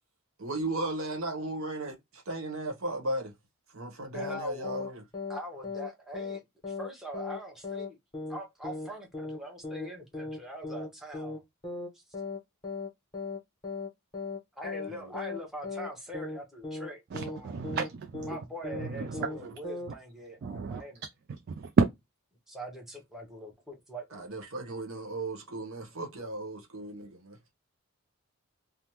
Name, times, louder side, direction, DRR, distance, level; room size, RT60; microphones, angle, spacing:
voice 1, 0.4-3.3 3.7-5.0 14.9-15.1 24.1-27.4, right 2 dB, 65° right, 1.0 m, -36 dB
sound 1, 4.1-4.4 4.6-4.9 5.1-5.4 5.6-5.9 6.1-6.4 6.6-6.9 7.1-7.4 7.6-7.9 8.1-8.4 8.6-8.9 9.1-9.4 9.6-9.9 10.1-10.4 10.6-10.9 11.1-11.4 11.6-11.9 12.1-12.4 12.6-12.9 13.1-13.4 13.6-13.9 14.1-14.4 14.6-14.9 15.1-15.4 15.6-15.9 16.1-16.4 16.6-16.9 17.1-17.4 17.6-17.9 18.1-18.4 18.6-18.9 19.1-19.4 19.6-19.9, left 3 dB, 20° left, 0.8 m, -37 dB
voice 2, 4.1-4.9 5.3-8.0 8.3-11.4 11.9-12.0 14.6-17.6 18.3-21.0 22.5-24.4, equal, ahead, 0.8 m, -43 dB
voice 3, 17.1-18.3 18.8-19.3 20.4-20.8 21.6-21.8, right 4 dB, 45° right, 0.3 m, -29 dB
3.4 x 2.0 x 2.9 m
head